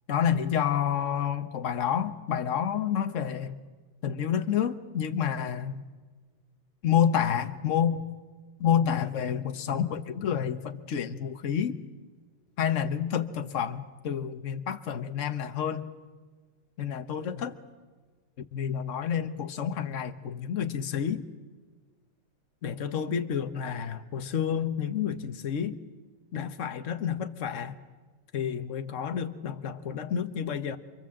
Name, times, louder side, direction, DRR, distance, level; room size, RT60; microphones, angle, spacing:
voice 1, 0.1-3.6 4.0-5.8 6.8-8.0 8.6-11.8 12.6-15.9 16.8-17.5 18.5-21.2 22.6-25.8 26.3-27.8 28.3-30.8, left 8 dB, 45° left, 1.4 m, -29 dB
28.5 x 24.0 x 7.7 m
omnidirectional pair, 1.9 m